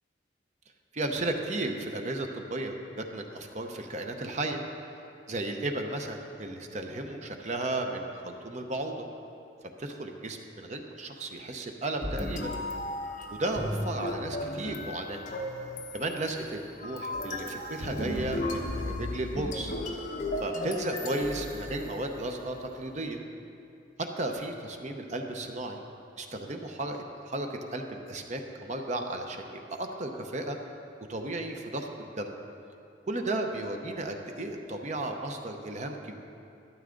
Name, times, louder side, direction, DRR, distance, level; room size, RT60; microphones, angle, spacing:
voice 1, 0.9-4.6 5.3-9.1 9.8-12.5 13.3-15.2 15.9-19.7 20.4-23.2 24.2-25.8 26.2-30.6 31.1-32.3 33.1-36.1, right 2 dB, 40° right, 4 dB, 0.7 m, -34 dB
sound 1, 12.0-22.3, left 1 dB, 40° left, 1.1 m, -35 dB
12.5 x 12.0 x 3.8 m, 2.7 s
head